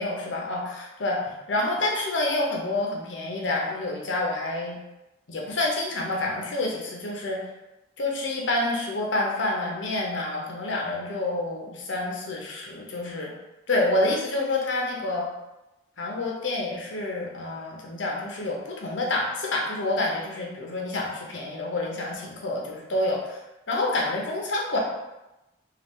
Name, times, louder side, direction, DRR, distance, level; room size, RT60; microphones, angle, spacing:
voice 1, 0.0-4.8 5.3-7.4 8.0-13.3 13.7-15.3 16.0-23.4 23.7-24.8, left 2 dB, 70° left, -1 dB, 0.8 m, -28 dB
3.8 x 2.5 x 3.6 m, 0.98 s
head